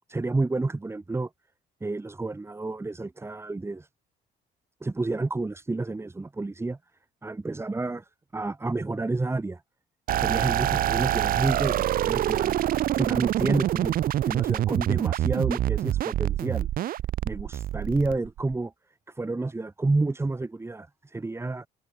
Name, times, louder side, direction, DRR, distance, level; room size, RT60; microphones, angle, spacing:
voice 1, 0.1-1.3 1.8-3.9 4.8-6.8 7.2-9.6 10.2-12.6 12.9-16.7 17.2-18.7 19.1-21.7, right 3 dB, 15° right, 3.3 m, -30 dB
sound 1, 10.1-18.5, right 12 dB, 60° right, 0.9 m, -26 dB
cardioid pair, 110°, 17 cm